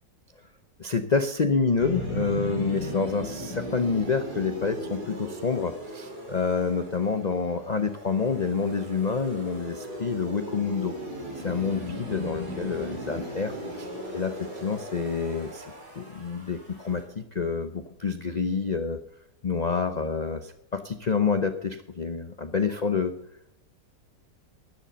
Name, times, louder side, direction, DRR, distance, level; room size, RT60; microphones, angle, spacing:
voice 1, 0.8-10.9 11.4-15.7 16.0-19.0 19.4-23.1, left 5 dB, 85° left, 9 dB, 0.3 m, -28 dB
sound 1, 1.8-17.0, equal, 60° right, 4.6 m, -37 dB
12.0 x 10.0 x 6.8 m, 0.80 s
omnidirectional pair, 1.9 m